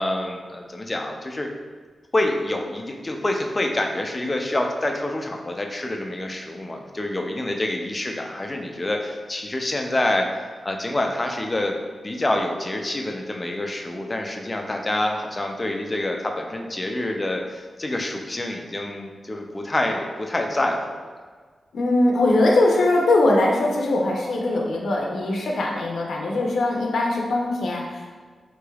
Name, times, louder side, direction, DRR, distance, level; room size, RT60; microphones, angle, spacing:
voice 1, 0.0-1.5 2.1-10.3 10.6-11.7 12.0-21.0, left 1 dB, 20° left, 2 dB, 0.4 m, -27 dB
voice 2, 21.7-28.1, left 2 dB, 80° left, -1 dB, 0.6 m, -21 dB
3.8 x 3.2 x 2.3 m, 1.5 s
wide cardioid pair, 150°, 0 cm